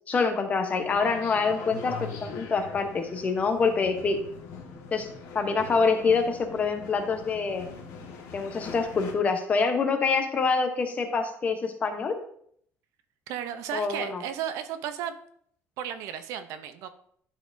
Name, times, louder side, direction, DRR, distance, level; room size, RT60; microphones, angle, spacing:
voice 1, 0.1-4.2 4.9-5.1 5.3-7.7 8.3-12.2 13.7-14.2, left 4 dB, 30° left, 5 dB, 0.8 m, -26 dB
sound 1, 0.7-9.1, left 5 dB, 75° left, 1.4 m, -42 dB
voice 2, 13.3-15.1 15.8-16.9, right 9 dB, 80° right, 10 dB, 0.6 m, -34 dB
11.0 x 4.2 x 2.6 m, 0.65 s
cardioid pair, 160°, 5 cm